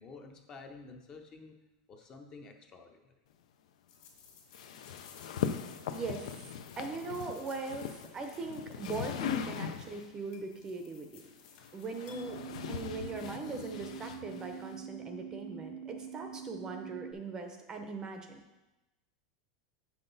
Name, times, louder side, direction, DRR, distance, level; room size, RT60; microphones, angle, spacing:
voice 1, 0.0-1.6 1.9-3.1, left 4 dB, 20° left, 4 dB, 0.6 m, -50 dB
sound 1, 3.9-12.6, left 6 dB, 45° left, 1.8 m, -58 dB
sound 2, 4.5-10.2 11.2-14.8, left 8 dB, 85° left, 0.5 m, -40 dB
voice 2, 5.9-6.5 6.8-11.2 11.7-12.4 12.7-18.4, right 3 dB, 20° right, 5 dB, 0.6 m, -40 dB
sound 3, 12.1-17.1, right 7 dB, 75° right, 0.6 m, -45 dB
7.7 x 5.9 x 3.9 m, 1.0 s
supercardioid pair, 160°, 3 cm